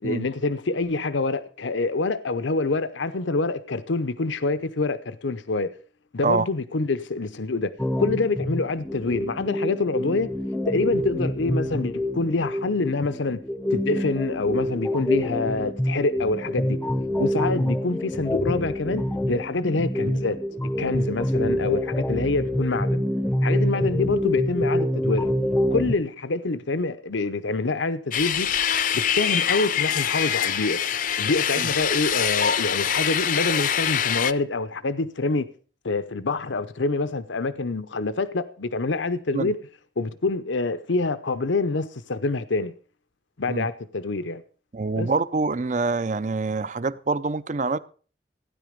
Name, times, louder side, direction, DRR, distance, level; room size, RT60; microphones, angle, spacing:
voice 1, 0.0-5.7 6.1-7.7 8.0-10.3 10.7-13.4 13.7-16.8 17.2-20.4 20.8-23.0 23.4-25.3 25.7-30.8 31.2-35.5 35.8-39.6 40.0-42.7 43.4-44.4 45.0-45.1, left 3 dB, 80° left, 0.8 m, -26 dB
sound 1, 7.8-25.9, left 1 dB, 10° left, 0.7 m, -26 dB
sound 2, 28.1-34.3, left 9 dB, 45° left, 0.6 m, -24 dB
voice 2, 44.7-47.8, right 3 dB, 40° right, 0.6 m, -25 dB
16.0 x 10.0 x 5.2 m
head